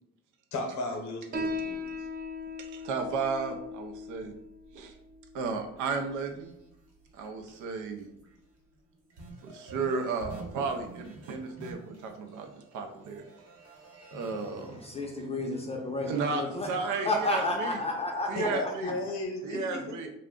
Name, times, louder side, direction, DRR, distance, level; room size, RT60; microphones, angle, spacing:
voice 1, 0.5-2.1 18.3-19.9, left 2 dB, 65° left, 3 dB, 0.8 m, -35 dB
Piano, 1.3-8.4, left 2 dB, 30° right, 0.4 m, -40 dB
voice 2, 2.6-4.3 4.7-4.9 5.3-6.5 7.1-8.1 9.4-12.5 12.7-13.3 14.1-14.8 16.1-17.7 18.3-18.9 19.4-20.1, right 4 dB, 85° right, 5 dB, 0.6 m, -33 dB
sound 1, 5.8-7.7 8.0-8.4 8.7-14.9, right 2 dB, 55° right, 0.9 m, -49 dB
voice 3, 14.4-18.9, left 2 dB, 20° left, 1 dB, 0.5 m, -32 dB
2.5 x 2.2 x 3.6 m, 0.77 s
cardioid pair, 90°, 30 cm